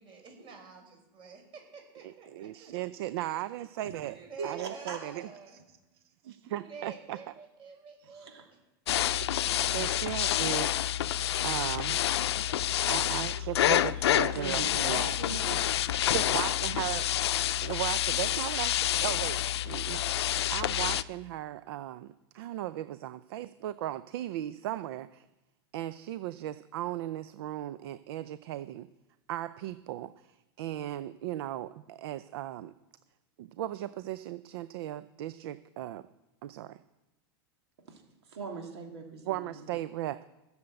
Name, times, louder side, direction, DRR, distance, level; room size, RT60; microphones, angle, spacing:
voice 1, 0.0-2.7 4.0-5.6 6.4-8.3 12.1-13.5, right 5 dB, 40° right, 2 dB, 5.6 m, -49 dB
voice 2, 2.0-4.2 4.4-5.6 6.2-7.2 8.0-8.1 9.2-10.9 11.4-12.0 12.9-15.0 16.1-17.1 17.6-25.2 25.7-28.9 29.3-32.7 33.4-36.1 36.4-36.8 39.3-40.2, right 14 dB, 70° right, 14 dB, 0.6 m, -37 dB
voice 3, 4.4-5.0 8.1-8.5 13.3-13.5 14.3-16.0 37.9-38.0 38.3-39.7, right 4 dB, 90° right, 2 dB, 3.0 m, -41 dB
sound 1, 8.9-21.0, left 12 dB, 85° left, 0.6 m, -28 dB
16.5 x 7.2 x 7.8 m, 1.0 s
supercardioid pair, 130°, 13 cm